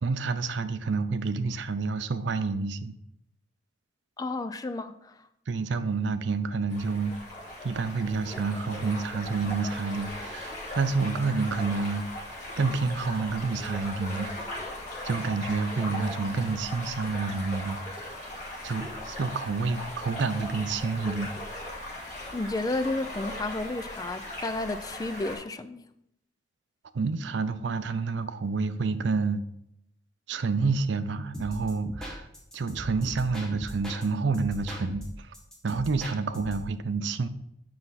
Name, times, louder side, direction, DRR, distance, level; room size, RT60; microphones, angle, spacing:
voice 1, 0.0-2.9 5.5-7.2 7.6-12.1 12.6-14.3 15.0-17.8 18.6-21.3 26.9-29.4 30.3-32.3 32.5-35.3 35.6-37.3, right 4 dB, 75° right, 12 dB, 0.5 m, -29 dB
voice 2, 4.2-5.1 22.3-25.8, left 2 dB, 20° left, 11 dB, 0.3 m, -32 dB
sound 1, 6.7-25.4, left 1 dB, 40° left, 2.7 m, -38 dB
sound 2, 31.3-34.1 34.3-36.7, equal, 5° left, 1.5 m, -39 dB
7.6 x 5.8 x 4.1 m, 0.79 s
head